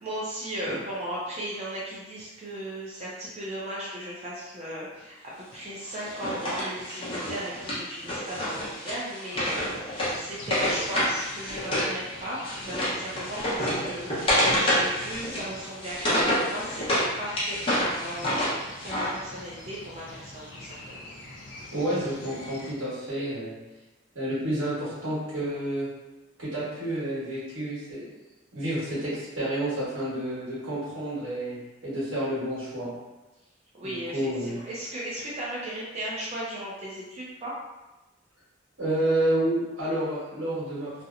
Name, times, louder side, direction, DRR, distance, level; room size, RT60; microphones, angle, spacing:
voice 1, 0.0-16.8 17.2-21.1 33.7-37.5, right 1 dB, 35° right, -6 dB, 0.4 m, -36 dB
Wood, 5.9-11.9 12.2-17.1 17.4-19.1, equal, 25° left, 0.7 m, -28 dB
sound 1, 9.9-22.7, left 2 dB, 65° left, 0.5 m, -44 dB
voice 2, 21.7-23.6 24.1-25.9 26.4-28.0 28.5-31.6 31.8-32.9 33.8-34.6 38.8-41.0, right 1 dB, 90° right, -8 dB, 1.3 m, -29 dB
2.7 x 2.0 x 2.4 m, 1.1 s
head